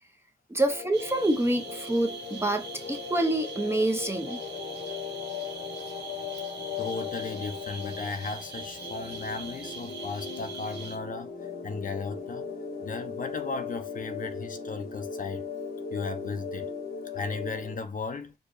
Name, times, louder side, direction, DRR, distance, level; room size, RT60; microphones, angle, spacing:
voice 1, 0.5-4.4, right 1 dB, 15° right, 0.6 m, -27 dB
sound 1, 0.7-17.7, left 6 dB, 70° left, 1.0 m, -38 dB
sound 2, 0.9-11.0, right 5 dB, 80° right, 0.8 m, -43 dB
voice 2, 6.8-12.5 12.8-15.5 15.9-16.7 17.1-18.3, left 4 dB, 50° left, 0.6 m, -36 dB
4.6 x 2.1 x 2.5 m
cardioid pair, 60°, 17 cm